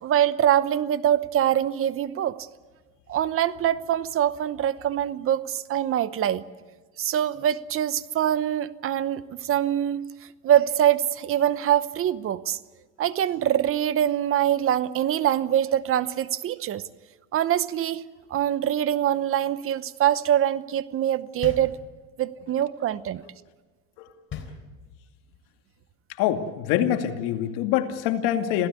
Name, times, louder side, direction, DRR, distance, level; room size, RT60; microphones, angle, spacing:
voice 1, 0.0-2.5 3.1-6.4 7.0-10.0 10.4-12.6 13.0-16.8 17.3-18.0 18.3-21.8 22.2-23.2, right 11 dB, 40° right, 17 dB, 0.9 m, -24 dB
sound 1, 21.4-22.3 24.3-25.2, left 6 dB, 35° left, 3.8 m, -39 dB
voice 2, 26.2-28.7, left 11 dB, 80° left, 6 dB, 2.5 m, -25 dB
27.0 x 16.5 x 8.4 m, 1.3 s
cardioid pair, 125°, 33 cm